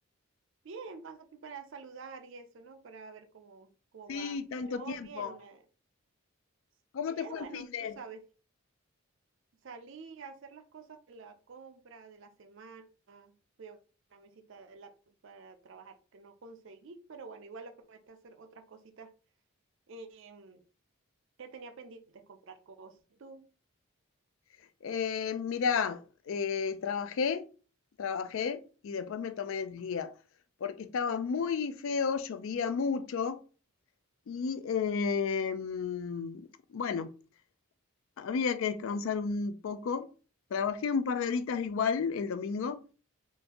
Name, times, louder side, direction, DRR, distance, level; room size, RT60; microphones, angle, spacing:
voice 1, 0.6-5.6 7.1-8.2 9.6-13.8 14.1-19.1 19.9-20.6 21.4-23.5, right 4 dB, 60° right, 0.4 m, -49 dB
voice 2, 4.1-5.3 6.9-8.0 24.8-27.5 28.0-30.1 30.6-33.4 34.3-37.1 38.2-40.1 40.5-42.8, left 6 dB, 65° left, 0.3 m, -32 dB
3.6 x 2.5 x 2.9 m
head